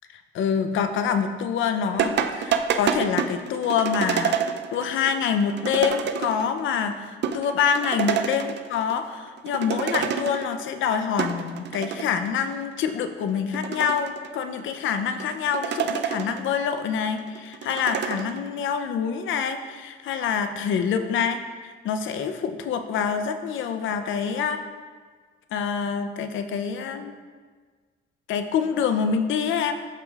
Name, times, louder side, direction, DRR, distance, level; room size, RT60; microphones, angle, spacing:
voice 1, 0.3-4.4 4.7-24.6 25.5-27.1 28.3-29.7, left 7 dB, 75° left, 8 dB, 0.6 m, -26 dB
sound 1, 2.0-6.6 6.9-7.0 7.2-9.0 9.3-10.6 11.0-12.3 12.8-12.9 13.4-14.6 15.2-16.6 16.9-18.4, right 7 dB, 60° right, 0.5 m, -28 dB
12.5 x 4.9 x 2.4 m, 1.5 s
cardioid pair, 90°, 20 cm